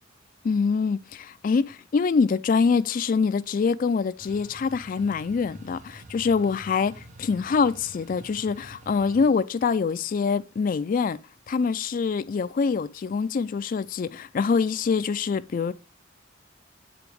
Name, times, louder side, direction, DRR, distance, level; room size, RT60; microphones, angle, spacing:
voice 1, 0.4-11.2 11.5-15.7, left 5 dB, 45° left, 0.3 m, -25 dB
sound 1, 4.2-9.3, right 1 dB, 40° right, 0.7 m, -47 dB
6.9 x 5.0 x 3.2 m
head